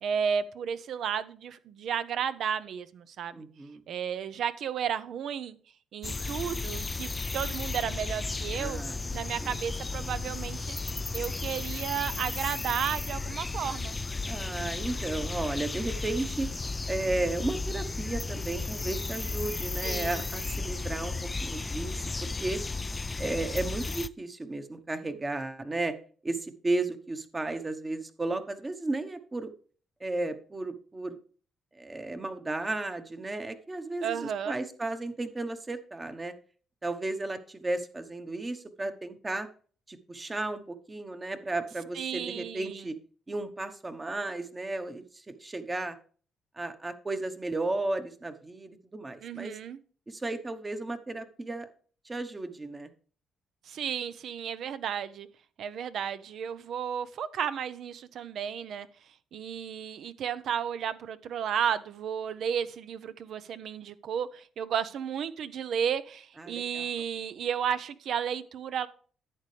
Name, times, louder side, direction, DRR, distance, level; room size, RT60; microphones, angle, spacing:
voice 1, 0.0-3.4 3.9-5.6 5.9-8.8 9.1-13.9 19.8-20.2 34.0-34.6 41.9-42.9 49.2-49.8 53.6-55.3 55.6-58.9 59.3-68.9, right 8 dB, 70° right, 0.7 m, -33 dB
voice 2, 3.3-3.8 8.6-9.5 14.3-16.5 16.9-22.6 23.2-25.9 26.2-29.5 30.0-31.2 31.7-36.3 36.8-39.5 39.9-43.0 43.3-46.0 46.6-49.6 50.1-51.7 52.0-52.9 66.4-66.9, right 2 dB, 20° right, 1.1 m, -34 dB
sound 1, 6.0-24.1, left 3 dB, 25° left, 0.3 m, -34 dB
11.0 x 8.3 x 3.3 m
cardioid pair, 90°, 0 cm